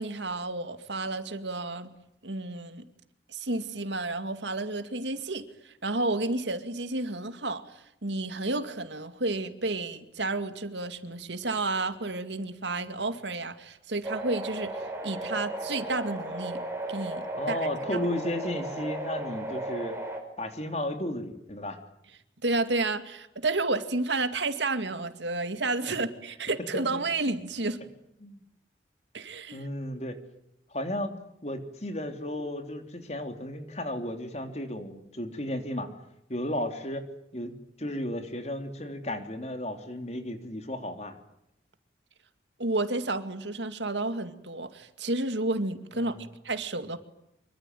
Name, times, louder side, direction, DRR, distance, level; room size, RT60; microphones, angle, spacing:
voice 1, 0.0-1.9 2.2-2.8 3.3-16.6 16.9-18.0 22.4-27.8 29.1-29.6 42.6-46.2 46.4-47.0, right 2 dB, 80° right, 10 dB, 2.3 m, -31 dB
sound 1, 14.0-20.2, right 2 dB, 15° right, 5.5 m, -35 dB
voice 2, 17.4-19.9 20.4-21.8 26.7-26.8 28.2-28.4 29.5-30.2 30.7-31.1 31.4-35.9 36.3-37.0 37.3-41.2 46.0-46.3, left 1 dB, 35° left, 7 dB, 3.3 m, -34 dB
25.5 x 23.5 x 9.3 m, 0.79 s
head